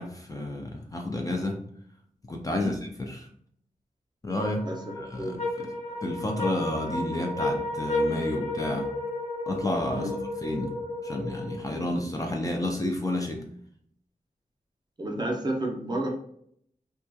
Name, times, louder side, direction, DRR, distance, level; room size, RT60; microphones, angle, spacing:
voice 1, 0.0-1.6 2.3-3.3 4.2-4.7 5.0-5.7 6.0-8.9 9.5-10.1 10.4-10.8 11.0-13.4, left 1 dB, 25° left, 2 dB, 0.3 m, -31 dB
sound 1, 4.4-11.9, left 2 dB, 50° left, 0.9 m, -32 dB
voice 2, 15.0-16.1, right 1 dB, 30° right, 0 dB, 0.6 m, -30 dB
2.7 x 2.3 x 2.2 m, 0.66 s
wide cardioid pair, 100°, 15 cm